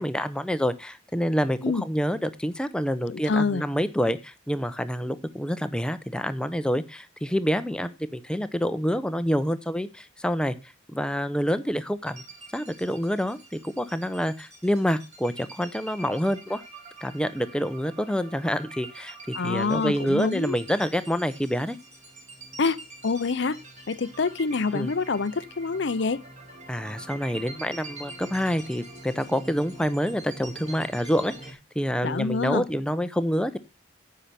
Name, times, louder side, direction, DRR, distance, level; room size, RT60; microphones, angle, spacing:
voice 1, 0.0-10.6 10.9-12.2 12.5-16.6 17.0-21.8 24.7-24.9 26.7-33.6, equal, 5° left, 0.7 m, -27 dB
voice 2, 3.1-3.6 19.3-20.6 22.6-23.6 23.9-26.2 32.0-32.6, left 4 dB, 60° left, 0.6 m, -26 dB
sound 1, 12.1-31.5, right 2 dB, 35° right, 3.5 m, -45 dB
10.0 x 6.7 x 5.8 m
head